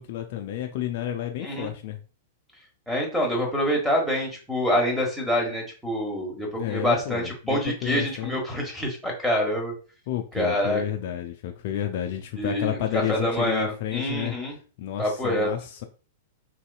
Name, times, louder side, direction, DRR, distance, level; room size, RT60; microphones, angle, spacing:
voice 1, 0.0-2.0 6.6-8.4 10.1-14.4 14.8-15.8, left 11 dB, 55° left, 4 dB, 0.4 m, -31 dB
voice 2, 2.9-9.7 10.3-10.8 12.4-14.6 15.0-15.5, equal, ahead, 0 dB, 1.3 m, -26 dB
3.9 x 2.7 x 2.3 m, 0.36 s
hypercardioid pair, 105°, 0 cm